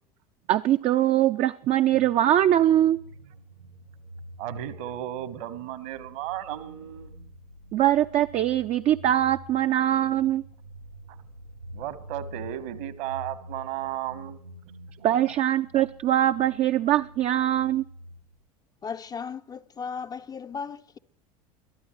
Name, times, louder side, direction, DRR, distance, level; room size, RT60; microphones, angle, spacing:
voice 1, 0.5-3.0 7.7-10.4 15.0-17.9, right 12 dB, 35° right, 0.5 m, -22 dB
sound 1, 1.8-18.4, right 1 dB, 90° right, 7.9 m, -46 dB
voice 2, 4.4-7.1 11.7-14.4 15.0-15.2, right 13 dB, 55° right, 1.3 m, -34 dB
voice 3, 18.8-21.0, left 6 dB, 20° left, 0.5 m, -36 dB
22.5 x 12.5 x 3.2 m
figure-of-eight pair, 75°, 19 cm